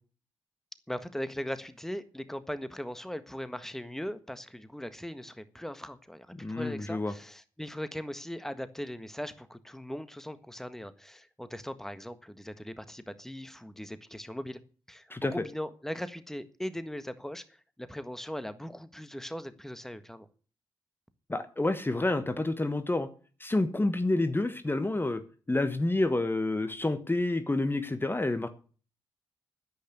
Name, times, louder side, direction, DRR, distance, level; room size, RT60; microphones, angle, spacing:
voice 1, 0.9-14.6 14.9-20.3, equal, 5° left, 12 dB, 1.6 m, -39 dB
voice 2, 6.4-7.1 15.1-15.3 21.3-23.1 23.4-25.2 25.5-28.5, left 2 dB, 20° left, 10 dB, 1.3 m, -28 dB
10.0 x 8.6 x 8.2 m, 0.40 s
hypercardioid pair, 40°, 10 cm